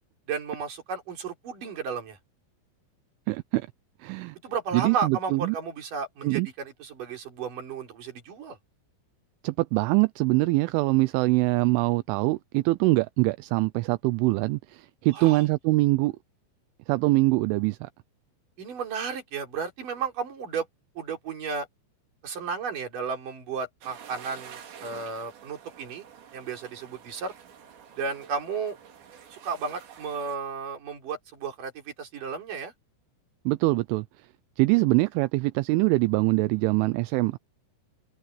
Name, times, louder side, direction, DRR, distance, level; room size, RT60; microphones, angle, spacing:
voice 1, 0.3-2.2 4.4-8.6 15.1-15.4 18.6-20.7 21.0-21.7 22.2-26.0 26.3-27.3 28.0-28.8 29.3-32.7, right 5 dB, 45° right, 5.4 m, -33 dB
voice 2, 3.3-3.7 4.0-4.4 4.7-5.6 6.2-6.5 9.4-16.1 16.9-17.9 33.5-34.0 34.6-37.4, right 22 dB, 85° right, 3.1 m, -23 dB
sound 1, 23.8-30.4, right 8 dB, 65° right, 5.2 m, -48 dB
omnidirectional pair, 5.7 m